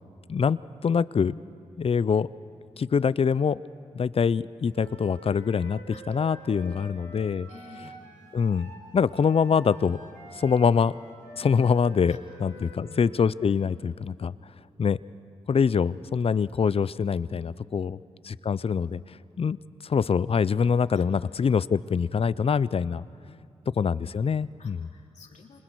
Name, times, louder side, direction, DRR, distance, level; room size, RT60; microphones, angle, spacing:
voice 1, 0.3-1.4 1.8-2.3 2.8-3.6 3.9-5.8 6.1-7.5 8.3-10.0 10.3-10.9 11.4-14.3 14.8-15.0 15.5-18.0 18.3-19.0 19.4-19.6 19.8-23.1 23.8-24.9, left 6 dB, 55° left, 19 dB, 0.5 m, -24 dB
Wind instrument woodwind instrument, 4.7-13.3, right 2 dB, 90° right, 2.5 m, -47 dB
voice 2, 6.5-6.9 7.5-7.9 12.1-12.2 12.5-13.1 20.9-21.1 23.2-23.5 24.6-25.6, left 4 dB, 75° left, 1 dB, 2.8 m, -50 dB
27.0 x 26.5 x 4.7 m, 2.4 s
cardioid pair, 45°, 12 cm